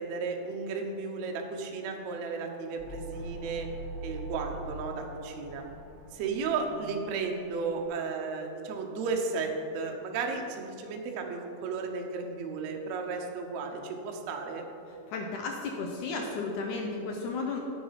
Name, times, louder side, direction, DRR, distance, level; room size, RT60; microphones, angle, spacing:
voice 1, 0.0-3.7 4.0-5.6 6.1-14.6, right 4 dB, 85° right, 2 dB, 1.5 m, -34 dB
sound 1, 2.8-7.9, right 1 dB, 55° right, 1.3 m, -43 dB
voice 2, 15.1-17.6, left 3 dB, 80° left, 2 dB, 1.8 m, -33 dB
8.5 x 7.2 x 5.7 m, 2.8 s
omnidirectional pair, 4.3 m